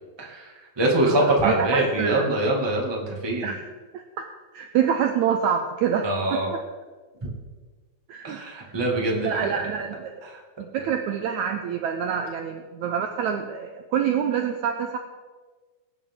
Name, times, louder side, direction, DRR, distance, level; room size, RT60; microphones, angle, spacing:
voice 1, 0.2-3.4 6.0-6.5 8.2-9.6, right 1 dB, 15° right, -2 dB, 1.1 m, -24 dB
voice 2, 1.1-2.3 3.4-3.7 3.9-4.2 4.5-6.6 8.1-8.7 9.1-10.2 10.6-15.0, right 8 dB, 85° right, 4 dB, 1.7 m, -27 dB
22.5 x 8.4 x 3.7 m, 1.4 s
omnidirectional pair, 4.2 m